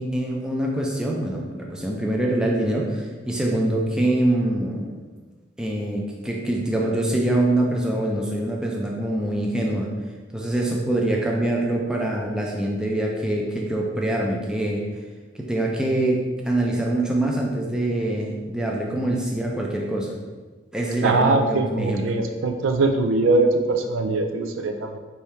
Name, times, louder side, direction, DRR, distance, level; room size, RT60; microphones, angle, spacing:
voice 1, 0.0-5.0 5.6-9.9 10.3-14.8 15.3-20.1 20.7-22.0, right 1 dB, 5° right, -2 dB, 0.5 m, -24 dB
voice 2, 21.0-25.0, right 3 dB, 85° right, 5 dB, 0.4 m, -22 dB
3.5 x 2.7 x 4.3 m, 1.4 s
head